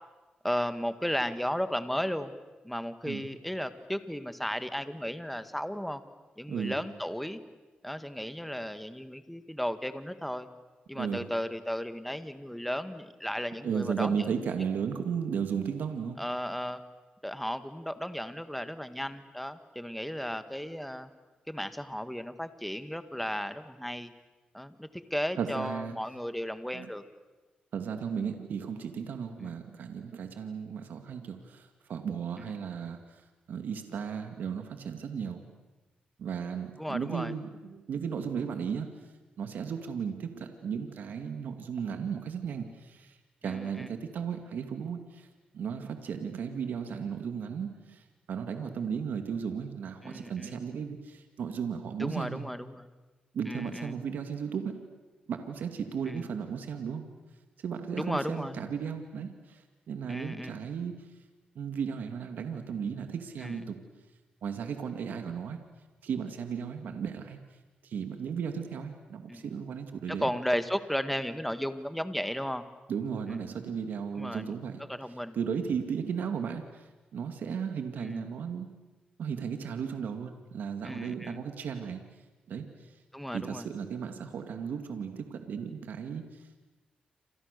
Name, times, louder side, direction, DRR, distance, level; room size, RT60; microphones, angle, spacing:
voice 1, 0.4-2.3 2.6-6.0 6.4-7.4 7.8-10.5 10.9-14.2 16.2-16.8 17.2-21.1 21.5-24.1 24.5-27.0 29.4-29.5 36.8-37.3 43.4-43.9 50.0-50.6 52.0-52.9 53.5-53.9 56.1-56.3 57.9-58.6 60.1-60.6 63.4-63.6 69.3-69.5 70.1-72.6 73.3-73.4 74.2-74.4 74.9-75.4 78.0-78.2 80.8-81.4 83.1-83.7, equal, 5° left, 10 dB, 1.8 m, -34 dB
voice 2, 10.9-11.3 13.6-16.2 25.4-25.9 26.7-26.9 27.7-33.2 33.5-35.4 36.2-38.9 39.4-45.3 45.5-52.5 53.3-54.7 55.3-57.1 57.6-60.9 61.6-63.8 64.4-65.6 66.0-67.4 67.8-70.3 72.9-74.8 75.3-78.7 79.2-82.0 82.5-83.0 83.3-86.7, right 7 dB, 80° right, 6 dB, 2.3 m, -35 dB
28.5 x 27.0 x 6.8 m, 1.2 s
cardioid pair, 85°, 3 cm